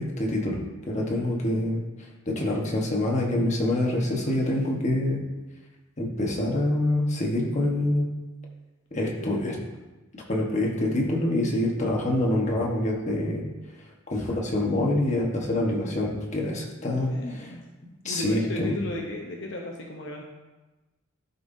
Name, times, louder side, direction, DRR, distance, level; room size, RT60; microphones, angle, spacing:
voice 1, 0.0-1.8 2.3-5.2 6.0-8.1 8.9-9.5 10.1-13.4 14.1-17.5 18.0-18.7, left 1 dB, 35° left, -1 dB, 1.2 m, -26 dB
voice 2, 1.0-1.3 9.0-9.6 16.9-17.7 18.0-20.2, left 1 dB, 60° left, 0 dB, 0.8 m, -36 dB
12.0 x 5.4 x 2.7 m, 1.1 s
head